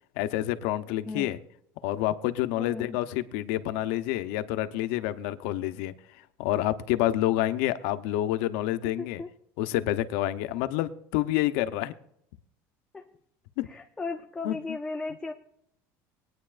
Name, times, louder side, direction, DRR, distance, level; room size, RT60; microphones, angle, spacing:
voice 1, 0.2-1.4 1.8-5.9 6.4-9.2 9.6-11.9 13.6-13.7 14.4-14.6, left 14 dB, 70° left, 10 dB, 0.8 m, -28 dB
voice 2, 1.1-1.4 2.6-3.0 9.0-9.3 12.9-13.1 13.7-15.3, left 3 dB, 10° left, 2 dB, 0.5 m, -36 dB
20.0 x 9.6 x 2.5 m, 0.71 s
cardioid pair, 175°, 7 cm